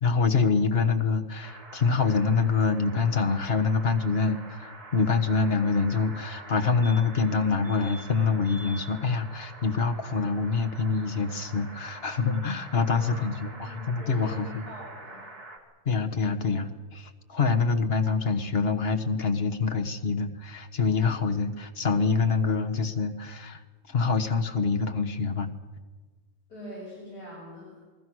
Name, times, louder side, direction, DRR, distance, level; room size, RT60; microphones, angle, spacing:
voice 1, 0.0-14.6 15.8-23.6 23.9-25.5, left 4 dB, 40° left, 7 dB, 1.6 m, -26 dB
sound 1, 1.4-15.6, right 2 dB, 75° right, 3.6 m, -46 dB
sound 2, 6.5-6.6 6.8-7.3 7.6-8.1 8.4-8.9 11.3-11.4 11.6-11.7, right 1 dB, ahead, 4.8 m, -46 dB
voice 2, 12.9-15.3 26.5-27.8, equal, 80° left, -5 dB, 7.4 m, -43 dB
28.5 x 20.0 x 6.3 m, 1.3 s
omnidirectional pair, 1.6 m